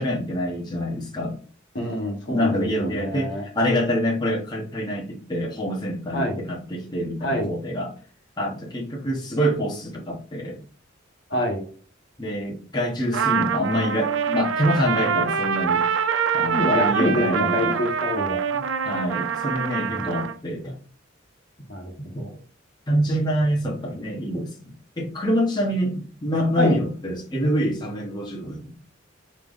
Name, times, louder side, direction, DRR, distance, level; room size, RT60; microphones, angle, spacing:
voice 1, 0.0-1.4 2.3-7.9 8.4-10.6 12.2-15.9 16.3-17.8 18.8-20.8 22.0-22.2 22.9-28.7, equal, 20° left, -2 dB, 0.9 m, -26 dB
voice 2, 1.7-3.4 6.1-6.4 7.2-7.5 11.3-11.6 16.5-18.6 19.9-20.1 21.7-22.3 26.6-26.8, equal, 65° left, 2 dB, 1.4 m, -26 dB
Trumpet, 13.1-20.3, right 7 dB, 70° right, 0.4 m, -25 dB
5.8 x 3.2 x 2.5 m, 0.41 s
head